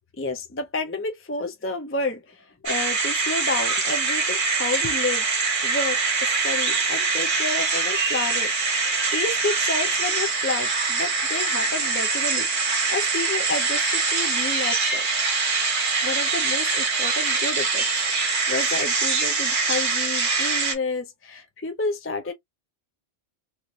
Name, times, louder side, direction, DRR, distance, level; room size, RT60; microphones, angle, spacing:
voice 1, 0.2-5.3 5.6-8.5 8.8-15.1 16.0-17.8 18.1-22.3, left 3 dB, 15° left, 0.5 m, -30 dB
sound 1, 2.7-20.8, right 4 dB, 50° right, 1.1 m, -24 dB
3.2 x 3.0 x 2.5 m
omnidirectional pair, 1.1 m